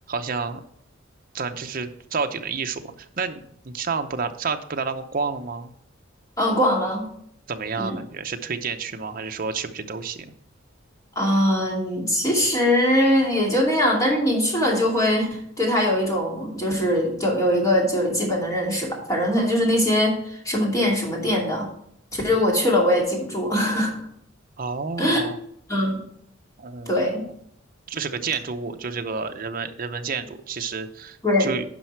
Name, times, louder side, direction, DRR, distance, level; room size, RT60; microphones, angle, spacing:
voice 1, 0.1-0.6 1.3-3.4 3.6-5.7 7.5-10.3 24.6-25.4 26.6-27.2 27.9-31.6, right 5 dB, 45° right, 6 dB, 0.7 m, -30 dB
voice 2, 6.4-7.1 7.8-8.0 11.2-21.7 22.1-23.9 25.0-25.3 25.7-26.0 26.9-27.2 31.2-31.5, left 1 dB, 15° left, -2 dB, 2.6 m, -22 dB
10.5 x 5.7 x 4.6 m, 0.67 s
head